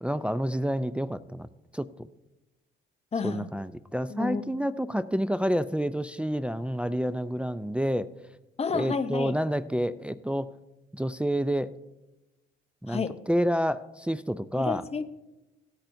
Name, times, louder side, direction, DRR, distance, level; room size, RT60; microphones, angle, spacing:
voice 1, 0.0-1.5 1.7-1.9 3.2-8.1 8.7-10.5 10.9-11.7 12.8-14.8, equal, 5° right, 12 dB, 0.4 m, -29 dB
voice 2, 3.1-3.5 4.1-4.4 8.6-9.3 12.9-13.1 14.6-15.2, left 5 dB, 30° left, 10 dB, 0.7 m, -30 dB
16.5 x 8.7 x 2.7 m, 1.0 s
cardioid pair, 80°, 20 cm